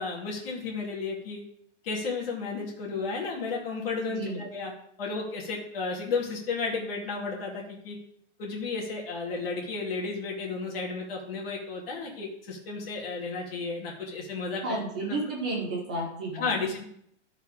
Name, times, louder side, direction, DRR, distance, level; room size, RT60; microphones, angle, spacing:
voice 1, 0.0-1.4 1.8-4.7 5.0-8.0 8.4-14.8 15.1-15.2 16.3-16.8, left 4 dB, 50° left, -2 dB, 2.9 m, -33 dB
voice 2, 4.1-4.5 14.6-16.5, right 2 dB, 5° right, -1 dB, 0.3 m, -32 dB
14.0 x 4.8 x 5.0 m, 0.70 s
hypercardioid pair, 165°, 36 cm